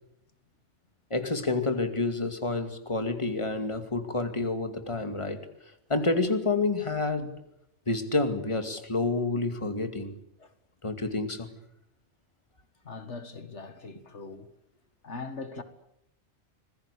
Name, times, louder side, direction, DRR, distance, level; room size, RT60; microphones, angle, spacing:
voice 1, 1.1-5.4 5.9-7.3 7.9-10.1 10.8-11.5, left 3 dB, 25° left, 2.5 m, -28 dB
voice 2, 12.8-14.5 15.0-15.6, left 4 dB, 70° left, 2.0 m, -40 dB
27.0 x 20.0 x 8.5 m
omnidirectional pair, 1.2 m